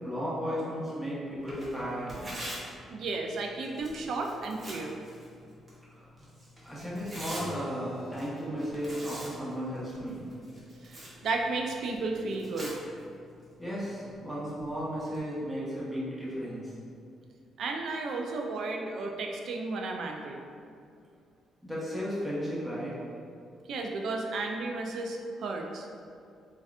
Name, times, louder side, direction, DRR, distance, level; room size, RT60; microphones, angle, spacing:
voice 1, 0.0-2.3 5.9-6.1 6.6-10.3 13.6-16.7 21.6-22.9, equal, 5° right, -9 dB, 1.0 m, -35 dB
Tearing, 1.4-15.2, equal, 25° right, 0.8 m, -46 dB
voice 2, 2.9-5.0 10.8-12.8 17.6-20.4 23.7-25.9, right 3 dB, 70° right, 2 dB, 0.3 m, -33 dB
Keyboard (musical), 7.3-12.4, left 1 dB, 85° left, 0.5 m, -48 dB
3.5 x 2.2 x 2.4 m, 2.4 s
cardioid pair, 90°, 0 cm